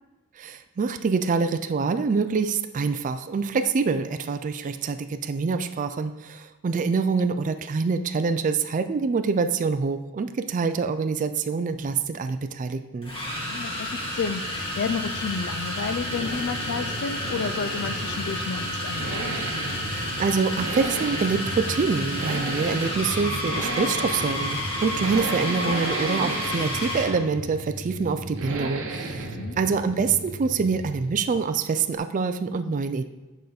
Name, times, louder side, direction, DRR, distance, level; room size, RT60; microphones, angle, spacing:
voice 1, 0.4-13.1 19.9-33.1, right 5 dB, 35° right, 9 dB, 0.3 m, -26 dB
sound 1, 11.8-11.9 13.0-27.2, left 1 dB, 25° left, 1.9 m, -31 dB
voice 2, 13.4-19.4 25.1-25.3 29.2-29.6, left 5 dB, 50° left, 12 dB, 0.4 m, -31 dB
sound 2, 13.7-31.5, right 2 dB, 65° right, 0.9 m, -34 dB
9.1 x 5.0 x 4.0 m, 1.1 s
head